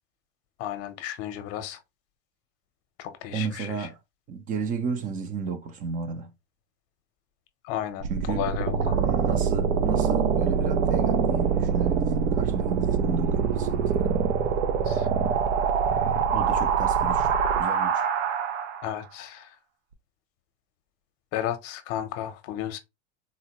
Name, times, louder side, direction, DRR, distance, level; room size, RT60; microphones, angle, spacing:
voice 1, 0.6-1.8 3.0-3.9 7.6-9.0 14.8-15.1 18.8-19.6 21.3-22.8, left 11 dB, 45° left, 0.7 m, -33 dB
voice 2, 3.3-4.0 4.3-6.3 8.1-8.4 8.8-14.1 16.3-17.3 17.6-18.0, right 5 dB, 25° right, 0.5 m, -33 dB
sound 1, 8.0-19.0, right 6 dB, 85° right, 0.6 m, -24 dB
3.8 x 2.1 x 2.9 m
supercardioid pair, 135°, 35 cm